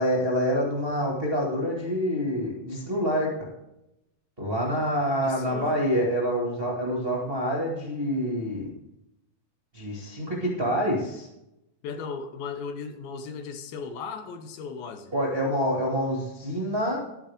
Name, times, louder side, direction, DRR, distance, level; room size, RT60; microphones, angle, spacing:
voice 1, 0.0-3.3 4.4-8.7 9.7-11.3 15.1-17.0, equal, 25° right, -4 dB, 1.3 m, -27 dB
voice 2, 5.2-5.7 11.8-15.1, left 5 dB, 75° left, 8 dB, 2.5 m, -36 dB
11.5 x 11.0 x 3.6 m, 0.87 s
omnidirectional pair, 4.4 m